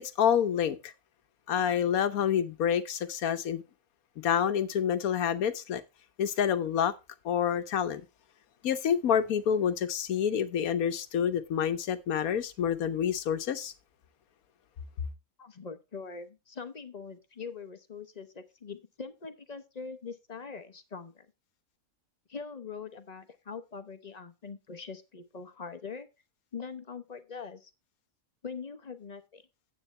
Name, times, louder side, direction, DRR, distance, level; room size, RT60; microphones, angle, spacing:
voice 1, 0.2-0.9 1.5-3.6 4.2-5.8 6.2-6.9 7.2-8.0 8.6-13.7, left 8 dB, 90° left, 1.3 m, -28 dB
voice 2, 15.4-21.3 22.3-26.1 26.5-27.7 28.4-29.4, left 5 dB, 35° left, 0.9 m, -42 dB
9.8 x 8.3 x 3.2 m
omnidirectional pair, 1.5 m